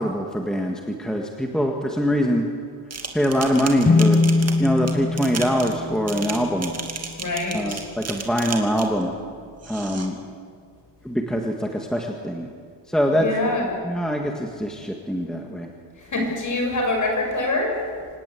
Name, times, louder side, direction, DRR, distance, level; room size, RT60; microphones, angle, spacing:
voice 1, 0.0-2.4 3.1-4.2 4.6-6.7 7.5-9.1 9.7-10.1 11.0-12.5 12.9-13.3 13.8-15.7, equal, ahead, 1 dB, 1.7 m, -23 dB
sound 1, 2.9-9.0 9.6-10.1, right 5 dB, 35° right, 2.5 m, -34 dB
sound 2, 3.8-7.4, left 3 dB, 20° left, 0.6 m, -22 dB
voice 2, 7.2-7.8 13.1-13.8 16.0-17.8, left 2 dB, 40° left, 2 dB, 6.4 m, -25 dB
26.0 x 19.0 x 8.4 m, 2.1 s
wide cardioid pair, 170°, 44 cm